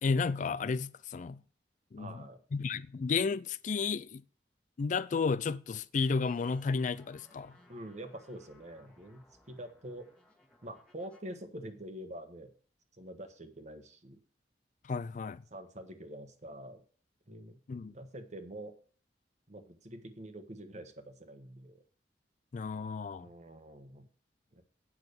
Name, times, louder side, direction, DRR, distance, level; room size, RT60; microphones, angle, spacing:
voice 1, 0.0-1.4 1.9-2.2 2.5-4.2 4.8-7.6 14.8-15.4 17.7-17.9 22.5-23.3, left 5 dB, 45° left, 0.3 m, -32 dB
voice 2, 2.0-2.4 7.7-10.1 10.6-12.5 13.0-14.2 15.5-16.8 17.3-17.6 17.9-18.7 19.5-21.8 23.2-24.1 24.5-24.6, right 1 dB, 40° right, 1.3 m, -46 dB
sound 1, 6.1-11.2, left 2 dB, 5° left, 1.7 m, -62 dB
8.8 x 6.0 x 6.7 m
head